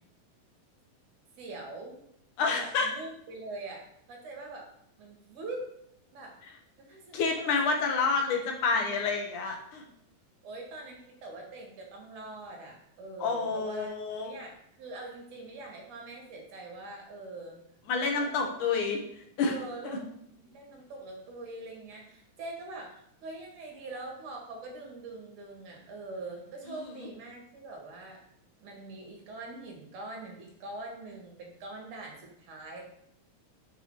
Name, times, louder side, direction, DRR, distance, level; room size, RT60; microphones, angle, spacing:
voice 1, 1.4-2.0 2.4-4.7 5.0-5.7 6.1-6.3 6.8-8.1 8.4-8.9 10.4-13.9 14.2-17.6 17.9-18.3 19.4-28.2 28.6-32.8, right 2 dB, 65° right, 0 dB, 3.3 m, -43 dB
voice 2, 2.4-2.9 7.1-9.9 13.2-14.3 17.9-19.0 19.4-19.5 19.8-20.0 26.7-27.1, left 4 dB, 70° left, 2 dB, 2.7 m, -29 dB
7.0 x 6.5 x 6.7 m, 0.73 s
omnidirectional pair, 3.9 m